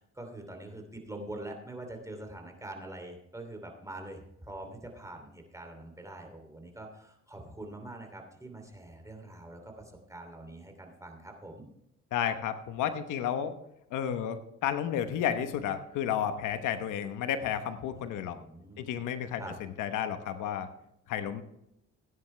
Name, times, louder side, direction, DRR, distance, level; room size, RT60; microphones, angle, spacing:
voice 1, 0.0-11.7 18.2-18.9 19.4-19.5, right 1 dB, 10° right, 3 dB, 2.9 m, -44 dB
voice 2, 12.1-13.5 13.9-18.4 18.8-19.4 19.8-20.7 21.1-21.4, left 9 dB, 90° left, 9 dB, 1.0 m, -32 dB
16.5 x 9.6 x 3.3 m, 0.79 s
cardioid pair, 90°, 30 cm